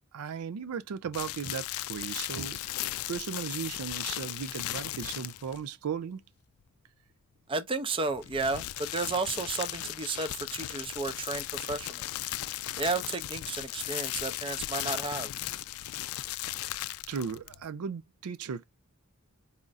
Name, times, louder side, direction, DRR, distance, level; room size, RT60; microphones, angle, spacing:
voice 1, 0.1-2.6 3.1-6.2 17.1-18.6, right 6 dB, 85° right, 0.4 m, -36 dB
sound 1, 1.1-5.6 8.1-17.7, left 15 dB, 75° left, 0.3 m, -37 dB
voice 2, 7.5-12.1 12.8-15.3, right 3 dB, 25° right, 0.5 m, -33 dB
4.2 x 2.4 x 3.9 m
head